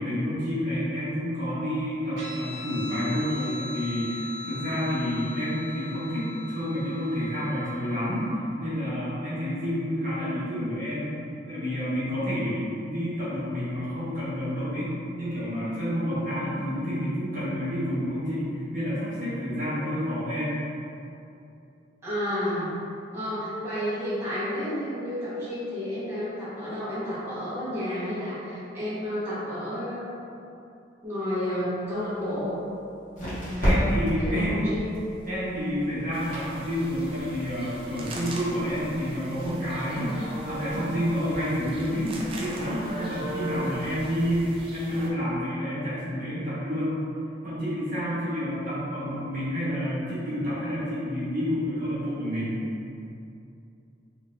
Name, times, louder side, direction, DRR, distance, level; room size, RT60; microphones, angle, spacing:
voice 1, 0.0-11.1 11.5-14.9 15.2-20.5 33.2-34.6 35.3-47.0 47.4-52.6, equal, 45° right, -11 dB, 1.2 m, -29 dB
Guitar, 2.2-9.1, left 2 dB, 85° right, 0.8 m, -40 dB
voice 2, 22.0-22.7 23.1-30.1 31.0-32.5 34.2-35.0, left 1 dB, 15° right, -14 dB, 1.1 m, -31 dB
sound 1, 31.8-44.2, equal, 45° left, 1.3 m, -35 dB
sound 2, 36.1-45.1, right 1 dB, 30° right, 0.4 m, -39 dB
3.8 x 3.1 x 2.5 m, 2.6 s
head